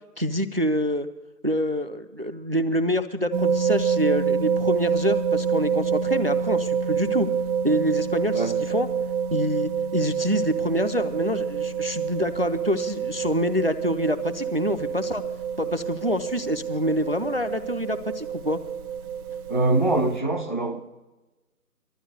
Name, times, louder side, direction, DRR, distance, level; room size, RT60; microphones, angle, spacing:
voice 1, 0.2-1.1 1.4-7.3 7.6-8.9 9.3-15.2 15.6-18.6, equal, 40° right, 0.4 m, -26 dB
sound 1, 3.3-20.2, right 7 dB, 65° right, 1.0 m, -27 dB
voice 2, 19.5-20.8, right 2 dB, 35° left, 0.5 m, -23 dB
12.0 x 8.6 x 7.8 m
figure-of-eight pair, 165°, 46 cm